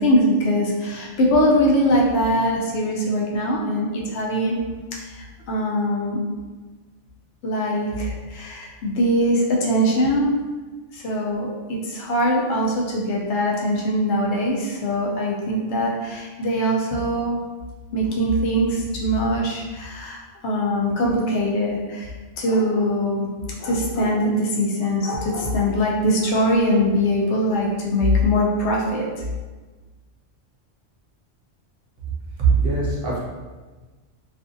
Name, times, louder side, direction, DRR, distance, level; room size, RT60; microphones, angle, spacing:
voice 1, 0.0-4.6 4.9-6.2 7.4-10.3 10.9-17.4 17.9-23.3 23.6-29.1, equal, 75° left, -3 dB, 0.9 m, -22 dB
voice 2, 32.4-33.2, right 5 dB, 60° right, -4 dB, 0.7 m, -20 dB
2.5 x 2.5 x 2.5 m, 1.3 s
omnidirectional pair, 1.2 m